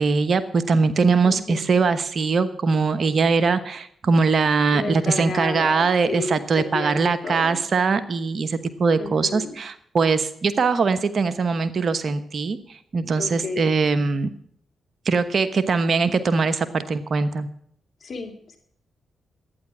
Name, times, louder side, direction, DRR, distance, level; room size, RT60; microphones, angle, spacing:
voice 1, 0.0-12.6 12.9-14.3 15.1-17.5, right 4 dB, 55° right, 12 dB, 1.1 m, -21 dB
voice 2, 1.2-1.6 4.7-7.6 9.0-9.6 13.2-13.7 18.0-18.6, left 4 dB, 60° left, 4 dB, 2.4 m, -32 dB
11.5 x 9.4 x 6.1 m, 0.66 s
supercardioid pair, 45°, 0 cm